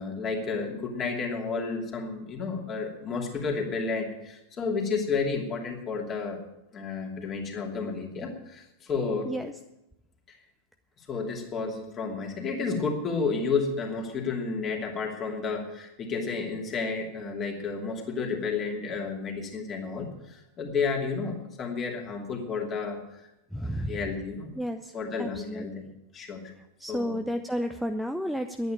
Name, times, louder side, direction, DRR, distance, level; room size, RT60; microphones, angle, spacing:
voice 1, 0.0-6.4 6.7-9.3 10.3-10.4 11.0-23.2 23.6-24.5 24.9-25.9 26.1-26.5 26.9-27.2, left 4 dB, 30° left, 1 dB, 2.8 m, -31 dB
voice 2, 23.5-23.9 24.6-24.9 25.2-25.6 26.8-28.7, equal, ahead, 6 dB, 0.6 m, -31 dB
11.0 x 9.4 x 8.9 m, 0.89 s
figure-of-eight pair, 90°, 0 cm